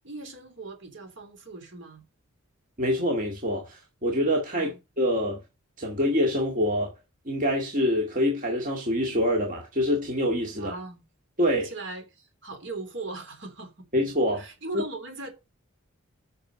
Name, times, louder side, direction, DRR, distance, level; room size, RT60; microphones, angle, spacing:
voice 1, 0.0-2.0 4.5-4.7 10.5-11.1 11.5-13.8 14.3-15.3, right 3 dB, 55° right, 3.3 m, -39 dB
voice 2, 2.8-5.4 5.8-6.9 7.3-10.7 11.4-11.7 13.9-14.4 14.7-14.8, equal, 35° right, 2.1 m, -25 dB
8.9 x 6.3 x 6.2 m
head